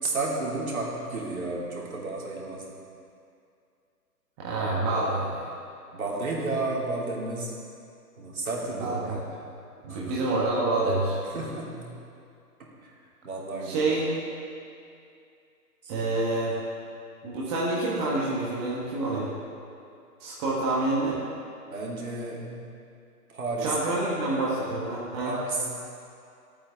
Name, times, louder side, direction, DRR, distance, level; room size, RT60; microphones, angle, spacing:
voice 1, 0.0-2.8 5.9-7.5 8.2-9.0 9.9-10.1 11.2-12.0 12.8-12.9 13.2-13.8 15.8-16.1 20.4-20.5 21.7-22.7 23.3-23.8 25.3-25.8, right 3 dB, 60° right, -4 dB, 3.4 m, -32 dB
voice 2, 4.4-5.5 8.8-9.2 9.8-11.2 13.6-14.2 15.9-16.6 17.2-19.3 20.2-21.2 23.6-25.4, right 2 dB, 20° right, -6 dB, 1.4 m, -27 dB
25.5 x 8.7 x 3.7 m, 2.5 s
figure-of-eight pair, 140°, 48 cm